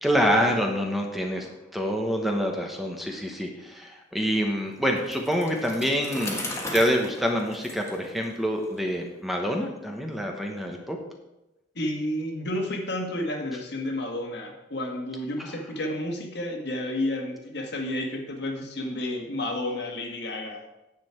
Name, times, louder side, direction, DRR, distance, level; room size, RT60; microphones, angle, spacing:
voice 1, 0.0-6.4 6.7-11.0, equal, ahead, 2 dB, 1.0 m, -26 dB
Bicycle, 5.0-8.8, left 2 dB, 15° left, 1.5 m, -37 dB
voice 2, 11.7-20.7, left 1 dB, 65° left, 2 dB, 1.6 m, -31 dB
9.5 x 7.7 x 4.5 m, 0.95 s
head